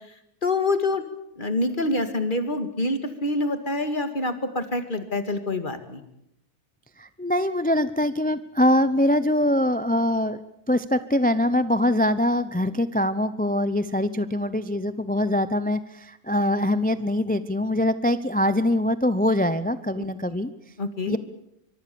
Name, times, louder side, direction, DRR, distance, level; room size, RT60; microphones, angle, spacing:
voice 1, 0.4-1.0 1.4-6.0 20.0-20.3 20.8-21.2, left 2 dB, 35° left, 9 dB, 2.2 m, -26 dB
voice 2, 7.0-10.4 10.7-20.5 21.1-21.2, left 1 dB, 10° left, 14 dB, 0.4 m, -23 dB
24.0 x 23.5 x 7.0 m, 0.79 s
omnidirectional pair, 1.6 m